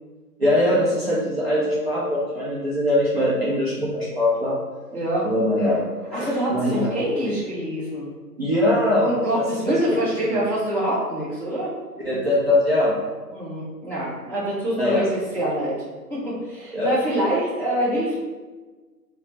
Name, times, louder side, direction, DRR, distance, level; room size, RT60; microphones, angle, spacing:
voice 1, 0.4-4.6 5.2-6.9 8.4-9.1 9.3-9.8 10.2-10.3 12.0-13.0 14.8-15.1 16.7-16.9, left 1 dB, 40° right, -8 dB, 0.5 m, -22 dB
voice 2, 4.9-5.3 6.1-8.1 9.0-11.7 13.3-15.8 16.1-18.1, right 1 dB, 20° right, -12 dB, 1.3 m, -25 dB
3.0 x 2.1 x 4.1 m, 1.3 s
figure-of-eight pair, 160°, 49 cm